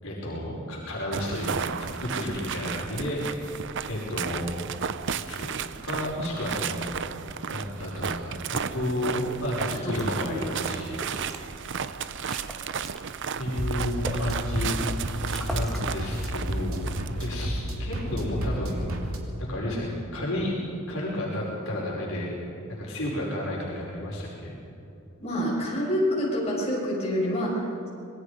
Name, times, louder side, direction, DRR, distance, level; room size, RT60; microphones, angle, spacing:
voice 1, 0.0-3.6 3.9-4.5 5.2-6.9 7.5-11.6 13.3-14.8 15.5-16.8 17.2-18.8 19.4-20.5 20.9-22.3 22.7-24.5, left 1 dB, 70° left, -4 dB, 5.3 m, -32 dB
sound 1, 1.1-17.5, right 6 dB, 60° right, 0.6 m, -34 dB
sound 2, 10.0-10.1 10.4-10.6 11.0-11.4 11.8-11.9 12.2-13.0 13.5-14.3 14.8-14.9 15.2-15.9 16.1-16.6, equal, ahead, 2.1 m, -39 dB
sound 3, 13.6-19.2, equal, 75° right, 2.9 m, -31 dB
voice 2, 25.2-27.9, equal, 30° left, -5 dB, 7.1 m, -27 dB
26.5 x 21.0 x 5.1 m, 2.6 s
head